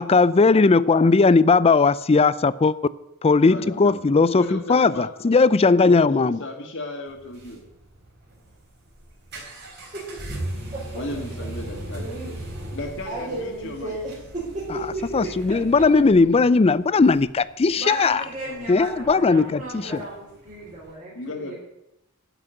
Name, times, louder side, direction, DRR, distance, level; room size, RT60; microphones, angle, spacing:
voice 1, 0.0-2.7 3.2-6.4 14.7-14.8 15.1-18.2 18.7-20.0, left 4 dB, 30° left, 0.4 m, -18 dB
voice 2, 3.4-4.0 4.3-5.3 5.8-7.6 10.9-12.4 12.7-14.0 21.2-21.5, left 1 dB, 60° left, 1.8 m, -35 dB
sound 1, 7.1-20.9, right 1 dB, 55° right, 3.7 m, -39 dB
voice 3, 11.9-12.4 13.0-15.3 17.7-21.5, right 2 dB, 35° right, 4.3 m, -34 dB
12.0 x 6.1 x 9.1 m
head